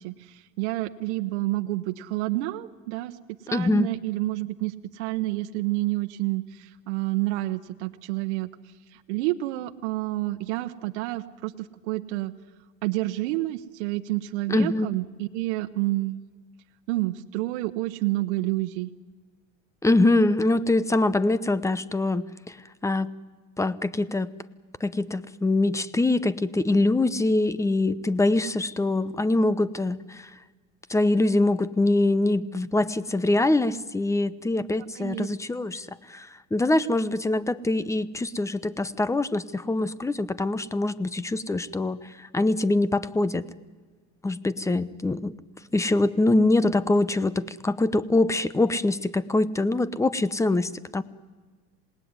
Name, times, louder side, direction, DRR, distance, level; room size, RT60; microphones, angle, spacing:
voice 1, 0.0-3.2 3.4-12.3 12.8-16.2 16.9-18.9 34.9-35.3, right 18 dB, 80° right, 8 dB, 1.0 m, -29 dB
voice 2, 3.5-3.9 14.5-14.9 19.8-22.6 22.8-23.1 23.6-24.3 24.8-30.3 30.9-43.5 44.2-45.3 45.7-51.0, left 2 dB, 10° left, 16 dB, 0.8 m, -24 dB
27.0 x 19.0 x 9.6 m, 1.4 s
supercardioid pair, 120°, 34 cm